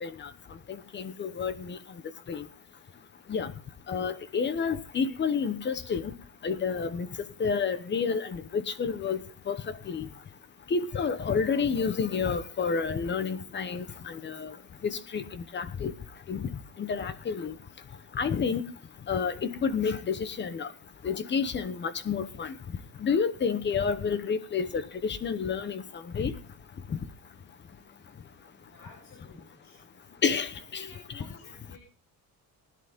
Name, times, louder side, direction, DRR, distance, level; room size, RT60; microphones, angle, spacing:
voice 1, 0.7-1.8 2.3-2.4 3.3-3.5 3.9-6.1 6.4-7.1 7.4-9.6 9.9-10.1 10.7-14.5 14.8-15.9 16.3-16.5 16.8-17.5 18.1-18.6 19.1-20.7 21.0-22.5 23.0-25.8 26.1-26.3 30.2-30.9 31.1-31.2, left 5 dB, 30° left, 1.0 m, -29 dB
voice 2, 28.7-29.8 30.6-31.8, left 3 dB, 85° left, 6.0 m, -52 dB
19.5 x 10.5 x 3.6 m
cardioid pair, 175°, 37 cm